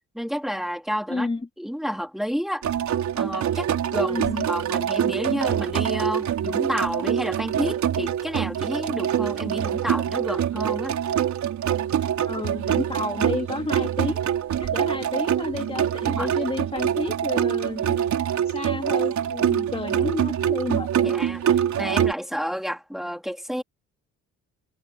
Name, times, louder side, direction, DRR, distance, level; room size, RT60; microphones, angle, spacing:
voice 1, 0.1-1.3 1.6-2.7 3.2-11.0 16.0-16.3 21.0-21.4 21.8-23.6, equal, ahead, 3.5 m, -30 dB
voice 2, 1.1-1.5 4.1-4.5 12.3-14.2 14.6-18.0 18.5-21.1, left 3 dB, 20° left, 2.5 m, -31 dB
sound 1, 2.6-22.1, right 9 dB, 70° right, 4.4 m, -25 dB
cardioid pair, 90°, 30 cm